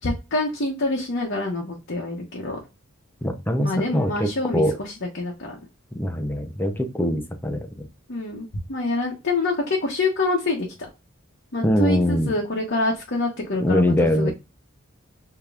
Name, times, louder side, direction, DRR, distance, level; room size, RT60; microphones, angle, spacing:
voice 1, 0.0-2.6 3.6-5.6 8.1-10.9 11.5-14.3, left 2 dB, 60° left, -1 dB, 0.9 m, -26 dB
voice 2, 3.2-4.8 5.9-7.9 11.6-12.3 13.6-14.3, left 1 dB, 10° left, 6 dB, 0.6 m, -23 dB
5.0 x 2.9 x 2.4 m, 0.26 s
head